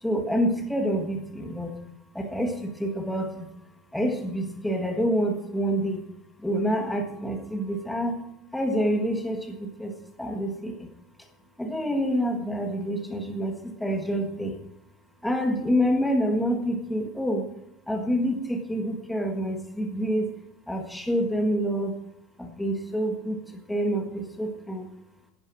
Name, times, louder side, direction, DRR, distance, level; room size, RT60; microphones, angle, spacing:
voice 1, 0.0-1.7 2.2-3.5 3.9-6.0 6.4-8.1 8.5-9.9 10.2-10.9 11.6-14.6 15.2-17.4 17.9-20.3 20.7-21.9 22.4-24.9, equal, 5° left, 3 dB, 1.6 m, -27 dB
16.5 x 11.5 x 4.7 m, 0.81 s
cardioid pair, 175°, 0 cm